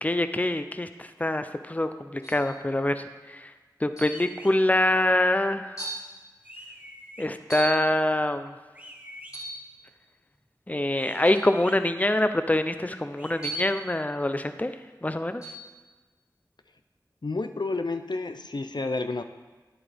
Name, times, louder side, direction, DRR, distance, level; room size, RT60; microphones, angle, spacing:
voice 1, 0.0-3.5 3.8-5.8 7.2-8.5 10.7-14.7 15.0-15.4, left 1 dB, 20° left, 9 dB, 0.5 m, -25 dB
sound 1, 2.2-2.5 4.0-4.3 5.1-5.2 5.8-6.1 7.5-7.9 9.3-9.7 11.3-11.5 13.4-13.8 15.4-15.7, right 2 dB, 50° left, 2.8 m, -36 dB
sound 2, 4.1-4.5 6.4-7.3 8.7-9.3 10.9-11.8 13.2-13.6, equal, 20° right, 1.2 m, -45 dB
voice 2, 17.2-19.2, left 3 dB, 75° left, 8 dB, 0.5 m, -30 dB
9.9 x 8.7 x 3.4 m, 1.3 s
wide cardioid pair, 45°, 8 cm